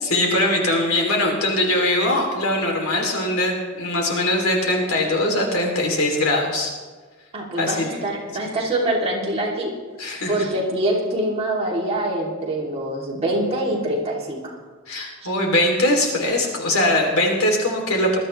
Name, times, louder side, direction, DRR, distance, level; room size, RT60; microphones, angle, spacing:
voice 1, 0.0-6.7 7.6-7.8 10.0-10.4 14.9-18.2, left 1 dB, 85° left, 1 dB, 3.1 m, -21 dB
voice 2, 7.3-9.7 10.3-14.5, right 1 dB, 30° right, -4 dB, 3.0 m, -24 dB
20.5 x 13.0 x 3.3 m, 1.4 s
head